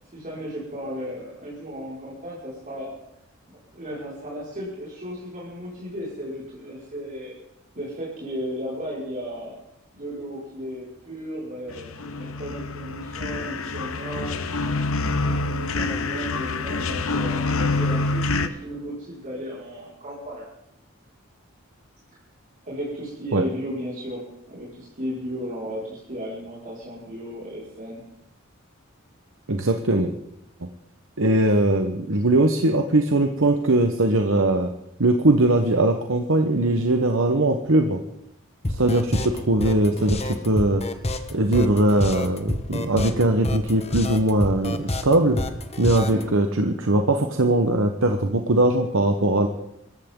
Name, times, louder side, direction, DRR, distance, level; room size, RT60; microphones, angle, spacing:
voice 1, 0.1-2.9 3.5-7.3 7.8-9.6 9.9-14.8 15.2-20.5 22.6-28.0 46.1-46.3, equal, 40° right, -6 dB, 5.4 m, -35 dB
sound 1, 11.7-18.5, left 3 dB, 75° left, 1.1 m, -26 dB
voice 2, 29.5-30.1 30.6-30.7 31.2-34.7 35.0-38.0 38.8-40.8 41.3-45.4 45.8-49.5, right 1 dB, 65° right, 5 dB, 1.2 m, -20 dB
sound 2, 38.6-46.2, left 1 dB, 30° left, 1.3 m, -28 dB
26.0 x 14.0 x 3.8 m, 0.81 s
head